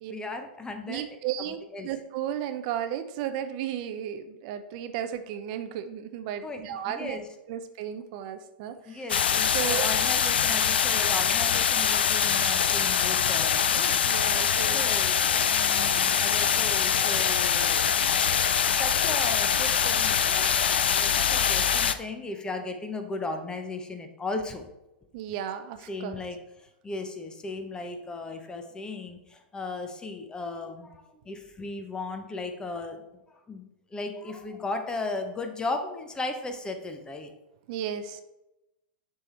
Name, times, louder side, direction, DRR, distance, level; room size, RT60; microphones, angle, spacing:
voice 1, 0.1-1.0 1.7-1.9 6.4-7.2 8.8-14.0 14.7-15.2 15.5-17.9 18.2-18.3 18.6-24.7 25.9-26.4 26.8-33.0 33.5-37.3, left 3 dB, 15° left, 6 dB, 0.8 m, -36 dB
voice 2, 0.9-7.2 7.5-9.0 9.5-9.9 14.0-14.8 25.1-26.2 37.7-38.2, right 10 dB, 50° right, 9 dB, 0.5 m, -34 dB
sound 1, 9.1-21.9, left 8 dB, 80° left, 0.4 m, -24 dB
6.7 x 3.5 x 4.2 m, 0.92 s
hypercardioid pair, 105°, 6 cm